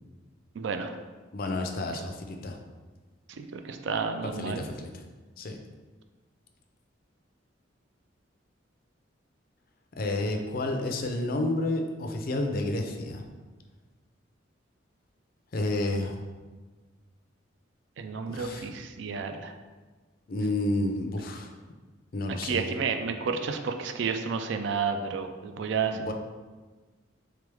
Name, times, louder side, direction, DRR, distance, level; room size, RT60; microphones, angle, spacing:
voice 1, 0.6-0.9 3.4-4.7 18.0-19.5 22.4-26.1, right 5 dB, 65° right, 6 dB, 0.4 m, -31 dB
voice 2, 1.3-2.6 4.4-4.9 5.4-5.6 10.0-13.2 15.5-16.2 18.3-18.7 20.3-21.5 22.1-22.7 26.1-26.2, left 2 dB, 50° left, 4 dB, 0.4 m, -30 dB
3.5 x 3.3 x 3.3 m, 1.3 s
head